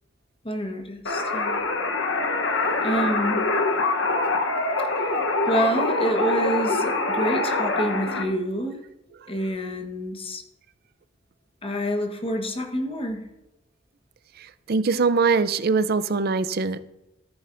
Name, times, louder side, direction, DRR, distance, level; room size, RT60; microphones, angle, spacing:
voice 1, 0.4-1.6 2.8-3.5 5.5-8.8 9.3-10.4 11.6-13.3, equal, 30° left, 3 dB, 1.2 m, -27 dB
sound 1, 1.1-8.2, left 2 dB, 65° left, 1.0 m, -24 dB
voice 2, 14.4-16.8, right 4 dB, 50° right, 13 dB, 0.5 m, -23 dB
13.5 x 9.9 x 2.6 m, 0.96 s
head